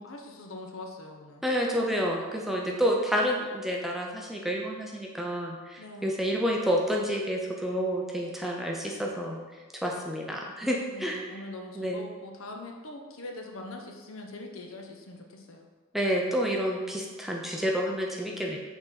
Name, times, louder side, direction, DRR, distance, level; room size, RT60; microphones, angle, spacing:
voice 1, 0.0-1.4 5.8-6.2 10.9-15.7, left 2 dB, 65° left, 2 dB, 0.8 m, -42 dB
voice 2, 1.4-9.4 9.8-11.4 11.8-12.0 15.9-18.6, equal, ahead, -1 dB, 0.5 m, -29 dB
6.0 x 4.0 x 4.0 m, 1.4 s
head